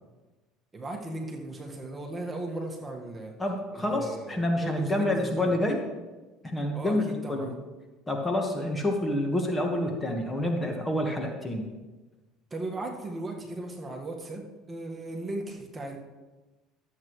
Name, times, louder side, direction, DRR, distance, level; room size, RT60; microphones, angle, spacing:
voice 1, 0.7-3.3 3.7-5.5 6.7-7.5 12.5-16.0, right 2 dB, 20° right, 1 dB, 1.6 m, -37 dB
voice 2, 3.4-5.8 6.4-7.0 7.3-7.6 8.1-11.7, left 1 dB, 15° left, 2 dB, 1.4 m, -28 dB
13.0 x 8.1 x 3.2 m, 1.2 s
supercardioid pair, 100°, 0 cm